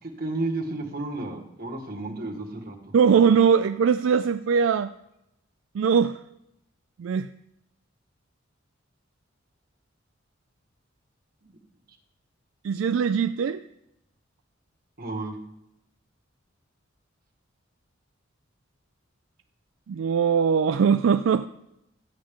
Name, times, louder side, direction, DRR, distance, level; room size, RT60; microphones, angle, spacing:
voice 1, 0.0-3.0 11.4-11.6 15.0-15.4, right 2 dB, 50° right, 0 dB, 1.7 m, -32 dB
voice 2, 2.9-4.9 5.7-6.2 7.0-7.3 12.6-13.6 19.9-21.5, right 6 dB, 75° right, 10 dB, 0.3 m, -21 dB
13.5 x 8.6 x 3.7 m, 0.83 s
head